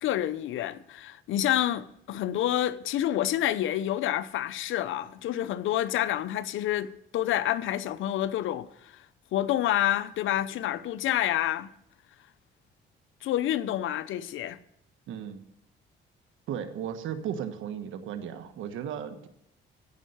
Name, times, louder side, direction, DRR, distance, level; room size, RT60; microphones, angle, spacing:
voice 1, 0.0-8.7 9.3-11.7 13.2-14.6, left 12 dB, 80° left, 0.7 m, -28 dB
voice 2, 15.1-15.4 16.5-19.3, right 8 dB, 85° right, 1.3 m, -35 dB
15.0 x 5.5 x 7.8 m
cardioid pair, 90°, 20 cm